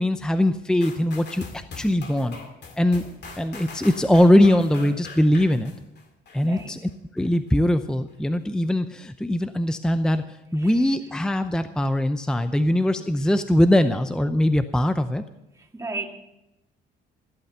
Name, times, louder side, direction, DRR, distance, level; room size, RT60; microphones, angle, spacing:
voice 1, 0.0-2.4 2.8-3.0 3.4-5.7 6.3-6.8 7.1-10.2 10.5-15.2, left 1 dB, 5° left, 10 dB, 0.6 m, -21 dB
sound 1, 0.8-6.6 7.2-7.3, left 4 dB, 60° left, 2.4 m, -41 dB
voice 2, 6.4-6.8 10.6-10.8 15.5-16.1, right 3 dB, 15° right, 2 dB, 2.0 m, -35 dB
15.5 x 8.4 x 6.8 m, 0.93 s
cardioid pair, 90°, 20 cm